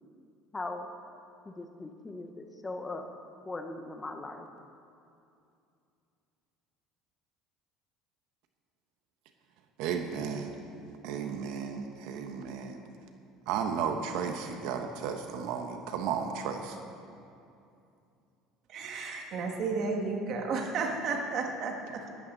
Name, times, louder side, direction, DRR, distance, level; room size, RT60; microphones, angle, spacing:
voice 1, 0.5-0.9 1.4-3.1 3.4-4.5, left 2 dB, 15° left, 5 dB, 1.1 m, -39 dB
voice 2, 9.8-10.5 11.0-12.8 13.5-16.8, right 6 dB, 75° right, 5 dB, 1.2 m, -34 dB
voice 3, 18.7-22.2, right 4 dB, 55° right, 2 dB, 2.0 m, -33 dB
17.5 x 12.5 x 4.1 m, 2.6 s
cardioid pair, 120°, 0 cm